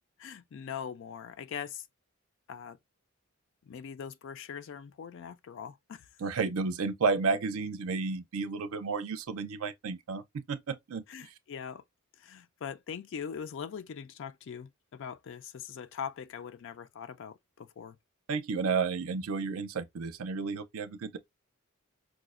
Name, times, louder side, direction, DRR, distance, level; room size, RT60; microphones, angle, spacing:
voice 1, 0.2-1.9 2.5-2.8 3.6-6.1 11.1-11.8 12.2-18.0, left 7 dB, 60° left, 0.3 m, -41 dB
voice 2, 6.2-11.3 18.3-21.2, right 4 dB, 80° right, 0.5 m, -32 dB
4.7 x 2.0 x 2.4 m
head